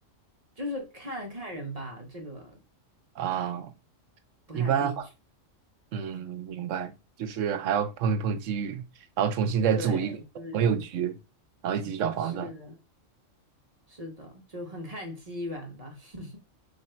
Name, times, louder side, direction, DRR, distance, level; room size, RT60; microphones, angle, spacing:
voice 1, 0.6-2.6 4.5-5.1 9.7-10.6 12.2-12.8 13.9-16.4, left 1 dB, 35° right, 0.9 m, -38 dB
voice 2, 3.2-3.7 4.5-5.1 5.9-6.9 7.2-8.8 9.2-10.1 10.5-11.2 11.6-12.5, right 7 dB, 75° right, 0.9 m, -28 dB
3.3 x 2.6 x 4.3 m
omnidirectional pair, 1.3 m